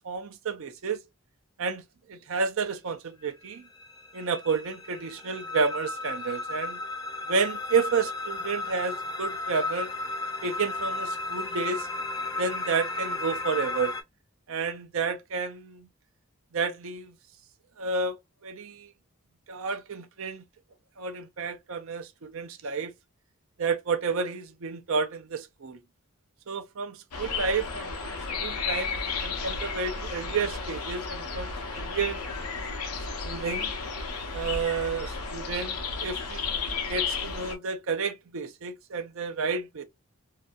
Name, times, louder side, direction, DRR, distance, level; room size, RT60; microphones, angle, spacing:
voice 1, 0.0-1.0 1.6-1.8 2.1-3.7 4.1-6.8 7.3-9.9 10.4-11.9 12.4-13.9 14.5-15.9 16.5-17.2 17.8-18.9 19.5-20.4 21.0-22.9 23.6-25.8 26.5-32.2 33.2-33.7 34.3-36.6 36.9-39.8, right 5 dB, 65° right, 0.5 m, -31 dB
sound 1, 3.4-14.0, left 2 dB, 15° left, 0.5 m, -34 dB
sound 2, 27.1-37.5, left 4 dB, 90° left, 0.8 m, -33 dB
2.7 x 2.3 x 2.5 m
head